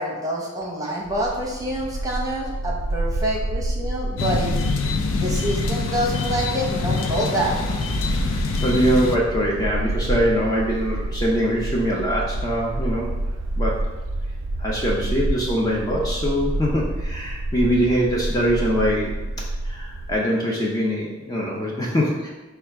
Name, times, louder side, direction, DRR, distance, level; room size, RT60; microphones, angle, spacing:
voice 1, 0.0-4.6 5.2-7.5, right 1 dB, 15° right, -2 dB, 0.7 m, -26 dB
Bark, 1.0-20.2, right 1 dB, 85° right, 0.4 m, -29 dB
Car passing by / Truck / Engine, 4.0-12.5, equal, 40° left, 1.0 m, -38 dB
sound 1, 4.2-9.2, left 3 dB, 85° left, 0.4 m, -25 dB
voice 2, 8.6-13.1 13.6-13.8 14.6-19.2 19.6-22.3, equal, 20° left, -3 dB, 0.5 m, -23 dB
4.7 x 2.3 x 4.5 m, 1.2 s
head